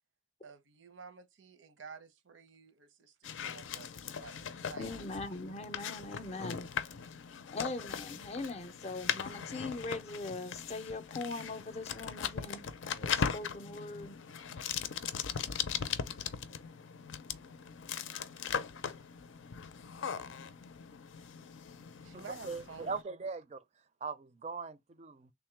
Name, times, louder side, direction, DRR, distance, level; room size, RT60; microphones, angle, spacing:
voice 1, 0.4-4.9 22.0-22.9, right 5 dB, 85° right, 0.7 m, -51 dB
sound 1, 3.2-23.0, left 7 dB, 90° left, 0.5 m, -39 dB
voice 2, 4.8-6.7 7.0-7.1 7.5-14.2, left 3 dB, 35° left, 0.5 m, -41 dB
voice 3, 22.1-23.6 24.0-25.3, right 4 dB, 35° right, 0.4 m, -40 dB
3.5 x 2.2 x 4.4 m
head